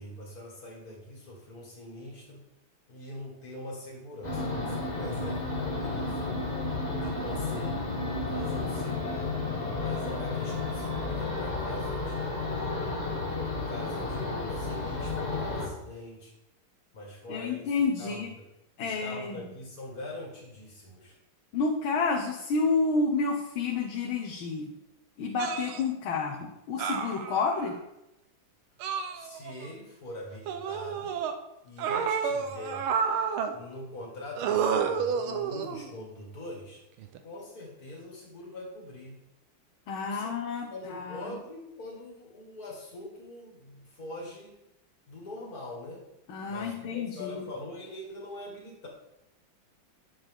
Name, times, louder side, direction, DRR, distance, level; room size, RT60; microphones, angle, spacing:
voice 1, 0.0-2.4 2.9-6.2 7.0-7.9 8.3-9.4 9.8-13.0 13.7-16.3 16.9-18.4 18.8-21.2 29.2-31.2 31.6-32.9 33.5-36.8 37.2-39.2 40.0-40.4 40.7-44.5 45.1-46.0 46.5-48.9, left 1 dB, 45° left, -1 dB, 2.4 m, -43 dB
sound 1, 4.2-15.7, left 3 dB, 20° left, 1.4 m, -32 dB
voice 2, 17.3-18.3 18.8-19.5 21.5-24.7 25.2-27.7 39.9-41.4 46.3-47.4, left 4 dB, 80° left, 0 dB, 1.7 m, -30 dB
sound 2, 25.4-25.8 26.8-27.7 28.8-29.7 30.5-31.3 31.8-33.5 34.4-35.9 37.0-37.2, right 6 dB, 90° right, 1.6 m, -30 dB
9.7 x 7.2 x 3.5 m, 0.89 s
omnidirectional pair, 2.2 m